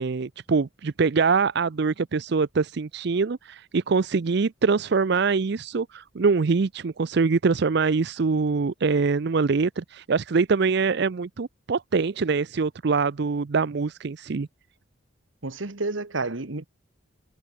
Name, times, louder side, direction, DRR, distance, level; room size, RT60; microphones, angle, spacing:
voice 1, 0.0-14.5, right 4 dB, 60° right, 0.5 m, -24 dB
voice 2, 15.4-16.6, right 3 dB, 75° right, 1.6 m, -30 dB
head